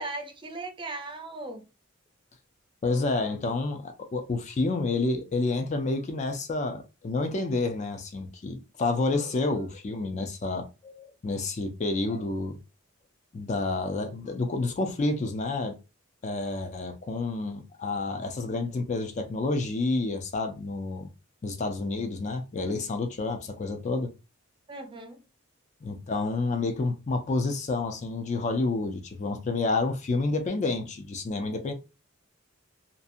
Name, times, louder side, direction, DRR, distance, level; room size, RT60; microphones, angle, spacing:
voice 1, 0.0-1.6 24.7-25.2, right 2 dB, 25° right, 0.5 m, -37 dB
voice 2, 2.8-12.6 13.3-15.8 16.2-21.1 21.4-24.1 25.8-31.7, left 3 dB, 35° left, 0.4 m, -29 dB
2.6 x 2.4 x 2.5 m
head